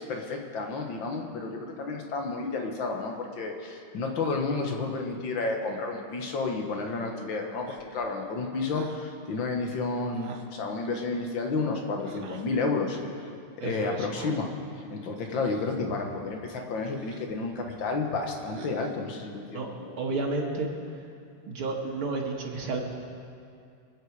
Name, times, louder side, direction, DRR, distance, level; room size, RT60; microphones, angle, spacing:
voice 1, 0.0-13.0 13.6-14.5 14.9-20.0, left 3 dB, 65° left, 2 dB, 2.1 m, -31 dB
sound 1, 7.7-8.1 8.7-9.0 10.1-10.6 12.0-12.5 13.9-14.5 15.3-15.8 16.8-17.4 18.4-19.1, right 6 dB, 60° right, 1.3 m, -46 dB
voice 2, 13.6-14.1 19.5-19.7 20.0-20.7 21.4-22.8, right 3 dB, 80° right, -1 dB, 2.2 m, -31 dB
25.0 x 8.3 x 4.8 m, 2.4 s
omnidirectional pair, 2.3 m